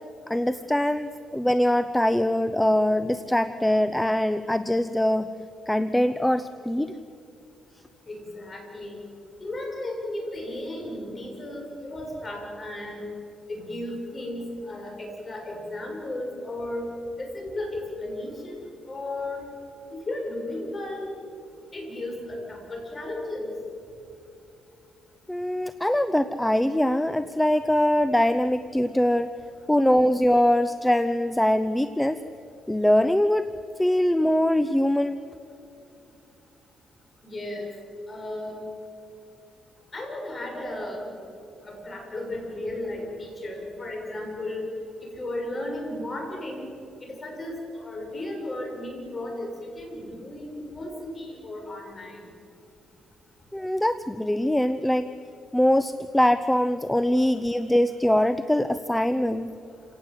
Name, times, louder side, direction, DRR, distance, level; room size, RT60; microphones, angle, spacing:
voice 1, 0.3-5.3 5.7-6.9 25.3-29.3 29.7-32.2 32.7-33.5 33.8-35.2 53.5-55.1 55.5-59.5, left 1 dB, 5° left, 12 dB, 0.7 m, -23 dB
voice 2, 8.1-9.0 9.4-13.1 13.5-16.9 17.2-19.4 19.9-21.1 21.7-23.5 37.2-37.7 38.1-38.7 39.9-41.1 41.6-44.7 45.0-46.7 47.0-52.2, left 1 dB, 30° left, 1 dB, 7.2 m, -34 dB
28.5 x 18.0 x 8.0 m, 2.6 s
cardioid pair, 90°, 0 cm